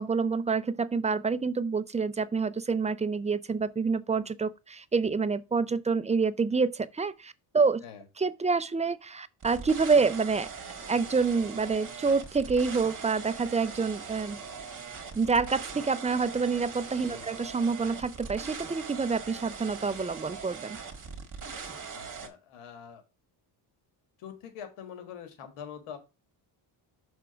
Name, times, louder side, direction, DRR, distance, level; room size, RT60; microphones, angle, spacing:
voice 1, 0.0-7.8 8.2-10.5 10.9-14.4 15.1-20.8, right 4 dB, 15° right, 0.4 m, -27 dB
sound 1, 9.4-22.3, right 5 dB, 40° right, 1.9 m, -41 dB
voice 2, 21.9-23.0 24.2-26.0, left 8 dB, 85° left, 1.7 m, -44 dB
6.1 x 3.7 x 5.7 m
cardioid pair, 80°, 50 cm